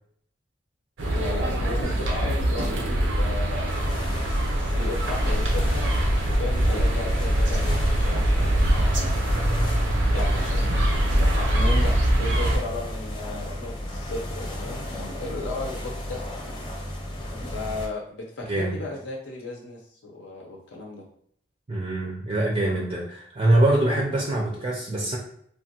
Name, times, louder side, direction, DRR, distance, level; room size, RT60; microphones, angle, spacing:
sound 1, 1.0-12.6, right 1 dB, 80° right, 0.6 m, -23 dB
voice 1, 1.1-5.9 6.3-9.2 10.1-10.9 11.4-16.5 17.5-21.0, left 2 dB, 75° left, -1 dB, 0.6 m, -35 dB
sound 2, 3.7-17.9, left 1 dB, 25° left, 0.7 m, -34 dB
voice 2, 18.5-18.8 21.7-25.2, right 1 dB, 35° right, -2 dB, 0.4 m, -24 dB
3.4 x 2.2 x 2.8 m, 0.66 s
head